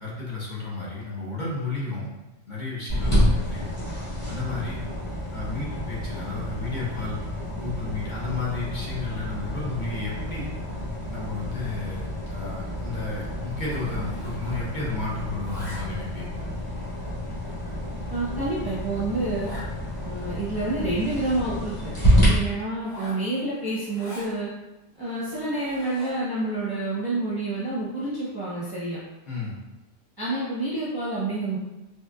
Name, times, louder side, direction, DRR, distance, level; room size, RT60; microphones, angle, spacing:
voice 1, 0.0-2.1 2.5-3.7 4.3-4.9 5.3-7.2 7.5-10.5 11.1-16.4 29.3-29.5, left 3 dB, 40° left, -5 dB, 1.1 m, -32 dB
sound 1, 2.9-22.3, equal, 25° left, 1.6 m, -29 dB
Zipper (clothing), 11.4-12.4 12.7-12.9 13.2-14.9 15.1-16.2 16.8-16.9 17.5-17.6 18.0-18.1 18.3-18.4 18.7-18.8 19.4-19.7 20.2-20.3 20.5-21.8 22.7-24.3 24.9-26.3, left 1 dB, 90° left, 1.6 m, -45 dB
voice 2, 18.1-19.5 20.0-21.7 22.1-24.5 25.0-29.0 30.2-31.6, right 2 dB, 20° right, -9 dB, 0.8 m, -28 dB
4.3 x 3.2 x 2.4 m, 1.0 s
omnidirectional pair, 1.2 m